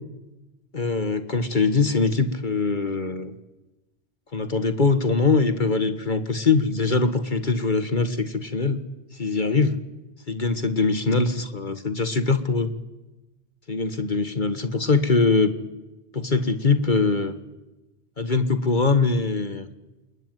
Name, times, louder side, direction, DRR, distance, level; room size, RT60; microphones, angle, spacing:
voice 1, 0.7-3.3 4.3-8.8 9.2-9.7 10.3-12.7 13.7-15.5 16.1-17.3 18.2-19.7, left 4 dB, 45° left, 10 dB, 1.7 m, -22 dB
28.5 x 21.5 x 9.3 m, 1.0 s
omnidirectional pair, 1.1 m